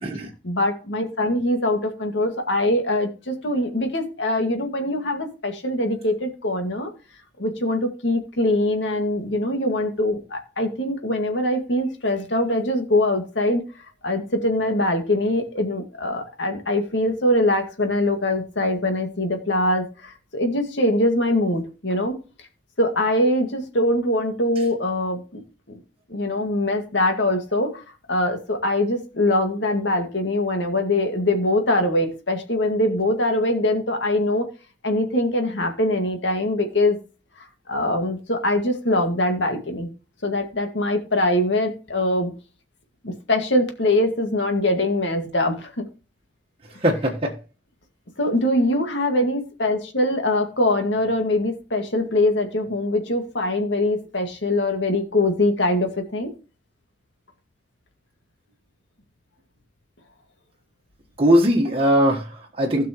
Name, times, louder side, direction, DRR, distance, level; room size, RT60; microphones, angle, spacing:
voice 1, 0.4-6.9 7.4-13.6 14.0-22.2 22.8-25.4 26.1-27.8 28.1-34.5 34.8-37.0 37.7-39.9 40.2-42.3 43.0-45.9 48.2-56.3, left 1 dB, 90° left, 2.0 m, -23 dB
voice 2, 46.8-47.4 61.2-62.9, equal, 30° right, 1.4 m, -20 dB
16.0 x 6.0 x 3.1 m
head